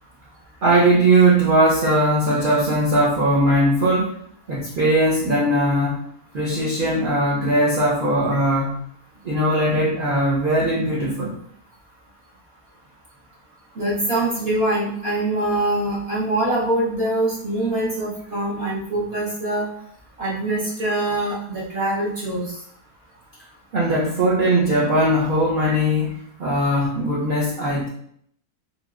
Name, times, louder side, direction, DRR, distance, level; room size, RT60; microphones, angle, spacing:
voice 1, 0.6-4.2 4.5-6.0 6.3-8.8 9.2-11.4 23.7-27.9, right 1 dB, 70° right, -5 dB, 0.5 m, -19 dB
voice 2, 13.8-19.7 20.2-22.6 25.7-25.8, right 1 dB, 50° right, -7 dB, 0.9 m, -24 dB
2.9 x 2.9 x 2.3 m, 0.66 s
omnidirectional pair, 1.6 m